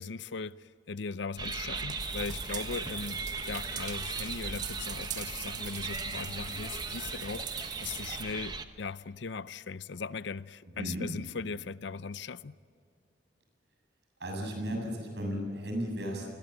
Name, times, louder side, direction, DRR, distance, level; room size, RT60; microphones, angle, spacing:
voice 1, 0.0-12.6, left 5 dB, 70° left, 0.6 m, -39 dB
sound 1, 1.4-8.6, right 4 dB, 20° right, 1.0 m, -38 dB
sound 2, 2.0-8.2, right 9 dB, 40° right, 2.0 m, -43 dB
voice 2, 10.7-11.1 14.2-16.3, equal, 65° right, 7.5 m, -34 dB
30.0 x 21.0 x 7.8 m
head